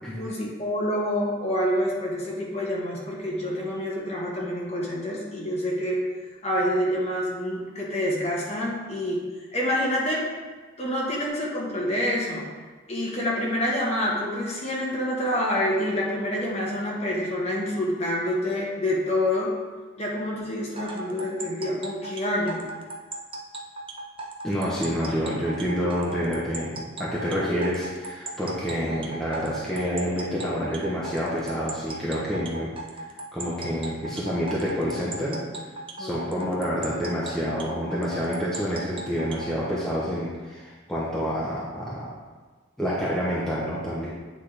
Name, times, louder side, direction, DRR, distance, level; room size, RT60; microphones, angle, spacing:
voice 1, 0.1-6.0 6.4-9.2 9.5-10.3 10.8-12.5 12.9-19.5 20.0-22.7 36.0-36.5, left 1 dB, 30° left, -4 dB, 1.2 m, -27 dB
sound 1, 20.8-39.5, right 2 dB, 25° right, 0.5 m, -37 dB
voice 2, 24.4-32.7 33.3-35.4 36.0-42.1 42.8-44.1, equal, ahead, -8 dB, 0.8 m, -28 dB
8.1 x 4.1 x 3.3 m, 1.4 s
head